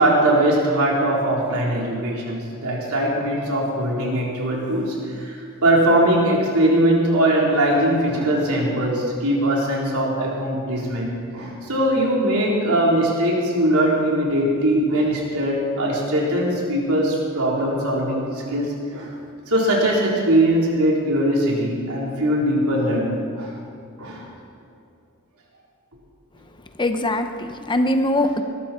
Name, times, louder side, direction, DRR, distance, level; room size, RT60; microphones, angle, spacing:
voice 1, 0.0-19.1 19.5-23.5 24.0-24.2 28.2-28.3, right 1 dB, 75° right, -3 dB, 3.9 m, -21 dB
voice 2, 26.8-28.4, left 1 dB, 20° left, 7 dB, 0.7 m, -22 dB
20.5 x 13.5 x 4.4 m, 2.4 s
head